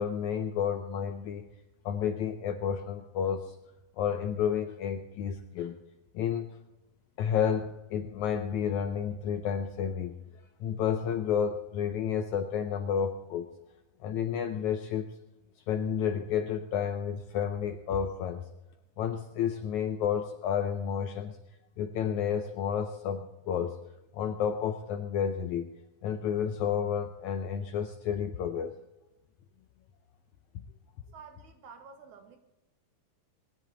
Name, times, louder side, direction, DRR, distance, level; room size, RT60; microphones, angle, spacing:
voice 1, 0.0-1.5 1.9-3.6 4.0-5.8 6.1-6.5 7.2-10.1 10.6-13.5 14.0-15.1 15.7-18.5 19.0-21.4 21.8-23.8 24.1-25.7 26.0-28.7, left 8 dB, 75° left, 7 dB, 1.7 m, -31 dB
voice 2, 31.1-32.4, right 6 dB, 65° right, 6 dB, 2.3 m, -50 dB
21.0 x 10.5 x 3.9 m, 0.99 s
omnidirectional pair, 4.1 m